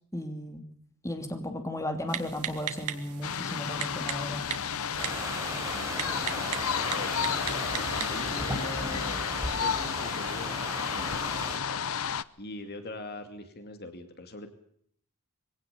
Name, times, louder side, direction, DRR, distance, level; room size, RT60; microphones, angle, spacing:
voice 1, 0.1-0.6 1.0-4.4, left 1 dB, 15° left, 5 dB, 2.9 m, -35 dB
Typing, 2.1-8.3, right 9 dB, 80° right, 2.2 m, -39 dB
sound 1, 3.2-12.2, left 8 dB, 65° left, 0.8 m, -32 dB
sound 2, 5.0-11.6, right 1 dB, 15° right, 4.7 m, -37 dB
voice 2, 6.2-7.1 7.7-9.2 9.5-11.8 12.4-14.5, left 2 dB, 45° left, 7 dB, 2.6 m, -42 dB
23.5 x 17.5 x 6.9 m, 0.65 s
head